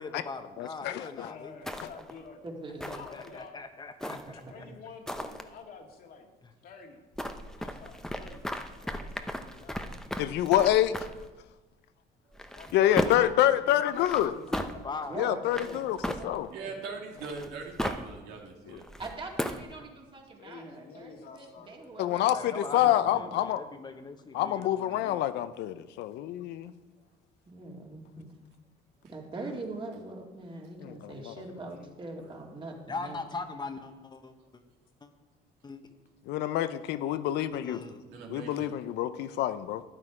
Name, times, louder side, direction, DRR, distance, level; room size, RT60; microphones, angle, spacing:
voice 1, 0.0-1.5 2.9-4.6 6.4-6.5 14.1-15.2 22.3-25.2 32.9-34.6 35.0-35.1 35.6-35.8 37.6-38.0, left 3 dB, 25° left, 7 dB, 1.1 m, -41 dB
voice 2, 0.6-1.3 10.2-11.0 12.7-14.3 15.2-16.0 16.2-16.5 18.7-18.8 22.0-23.6 24.3-26.7 30.8-31.3 36.3-37.8 38.3-39.8, left 12 dB, 80° left, 13 dB, 0.6 m, -27 dB
voice 3, 1.2-2.4 2.9-3.6 4.5-6.3 6.6-7.0 7.6-9.9 12.5-13.4 13.7-15.8 17.2-17.5 20.4-22.3 31.3-31.9, left 5 dB, 60° left, 2 dB, 2.0 m, -49 dB
sound 1, 1.6-2.2 2.8-3.4 4.0-4.5 5.1-5.4 7.1-11.3 12.3-13.4 13.9-14.7 15.5-16.6 17.2-18.1 18.8-19.7, equal, 5° left, 0.7 m, -36 dB
voice 4, 2.4-3.1 4.0-4.7 15.1-16.8 17.8-18.0 19.0-23.3 27.5-28.3 29.1-33.2, right 2 dB, 30° right, 0 dB, 2.3 m, -43 dB
voice 5, 16.5-18.9 38.1-38.7, right 4 dB, 85° right, 1 dB, 2.3 m, -41 dB
12.5 x 9.7 x 4.9 m, 1.2 s
cardioid pair, 110°, 17 cm